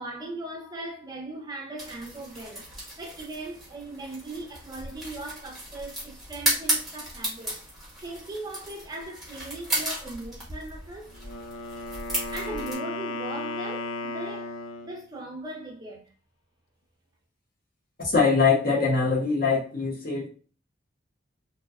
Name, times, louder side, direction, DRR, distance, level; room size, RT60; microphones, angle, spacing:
voice 1, 0.0-2.7 3.0-7.6 8.0-11.1 12.3-14.5 14.8-16.0, right 2 dB, 20° right, 0.4 m, -38 dB
sound 1, 1.8-12.7, right 1 dB, ahead, 0.8 m, -34 dB
Wind instrument woodwind instrument, 11.1-15.0, left 2 dB, 85° left, 0.4 m, -35 dB
voice 2, 18.0-20.3, left 4 dB, 45° left, 0.7 m, -23 dB
2.6 x 2.1 x 2.3 m
head